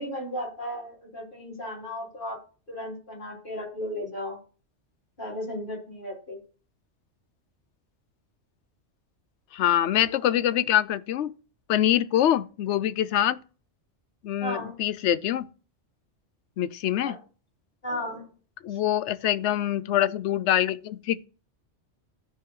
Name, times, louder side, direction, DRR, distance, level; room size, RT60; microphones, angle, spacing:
voice 1, 0.0-2.4 2.7-4.4 5.2-6.4 14.4-14.8 17.0-17.2 17.8-18.3, equal, 45° left, 4.2 m, -35 dB
voice 2, 9.5-11.3 11.7-13.4 14.2-15.5 16.6-17.2 18.6-21.3, left 11 dB, 75° left, 0.9 m, -24 dB
13.5 x 4.5 x 3.7 m
omnidirectional pair, 1.2 m